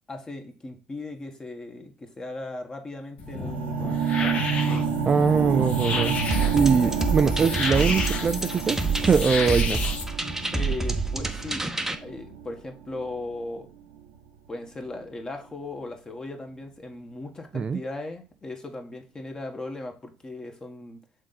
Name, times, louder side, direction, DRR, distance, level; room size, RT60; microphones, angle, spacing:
voice 1, 0.1-4.1 6.8-7.0 10.5-11.7 12.0-13.7 14.5-21.0, left 2 dB, 25° left, 1.5 m, -37 dB
sound 1, 3.2-10.0, left 4 dB, 50° left, 1.1 m, -32 dB
sound 2, 3.2-13.3 14.0-14.1, right 6 dB, 85° right, 1.1 m, -29 dB
voice 2, 5.1-6.2 6.5-8.8 9.1-9.8 17.5-17.8, right 5 dB, 35° right, 0.4 m, -22 dB
sound 3, 6.3-11.9, right 3 dB, 10° right, 0.9 m, -28 dB
6.2 x 3.7 x 4.1 m
hypercardioid pair, 60°, 3 cm